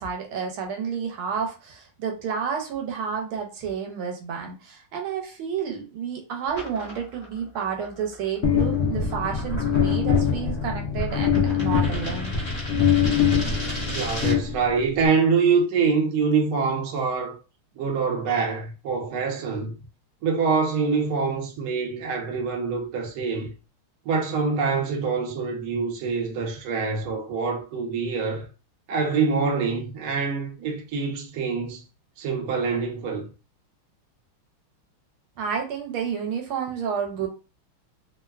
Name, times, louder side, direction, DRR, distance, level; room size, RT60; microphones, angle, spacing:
voice 1, 0.0-12.3 35.4-37.3, right 7 dB, 80° right, 1.5 m, -30 dB
sound 1, 6.5-14.5, equal, 20° left, 0.8 m, -38 dB
sound 2, 8.4-15.0, left 7 dB, 85° left, 0.8 m, -23 dB
voice 2, 13.9-17.4 17.8-19.7 20.2-23.5 24.0-28.5 28.9-31.8 32.2-33.3, right 5 dB, 60° right, 1.0 m, -25 dB
3.5 x 2.1 x 2.3 m
omnidirectional pair, 2.3 m